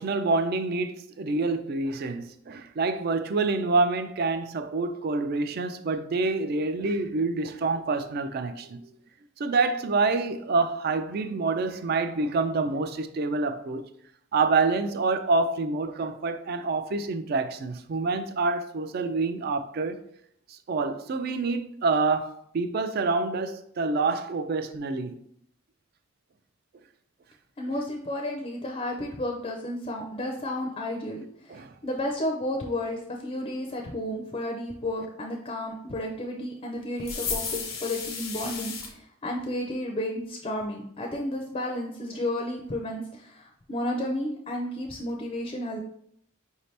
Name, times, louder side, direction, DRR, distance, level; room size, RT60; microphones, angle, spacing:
voice 1, 0.0-8.9 9.4-13.8 14.3-20.0 20.5-22.3 22.5-25.2 31.5-31.7, right 3 dB, 50° right, 0.3 m, -27 dB
voice 2, 27.6-45.8, left 1 dB, 30° left, 0.5 m, -32 dB
sound 1, 37.0-38.9, left 5 dB, 90° left, 0.9 m, -33 dB
4.9 x 2.7 x 3.2 m
head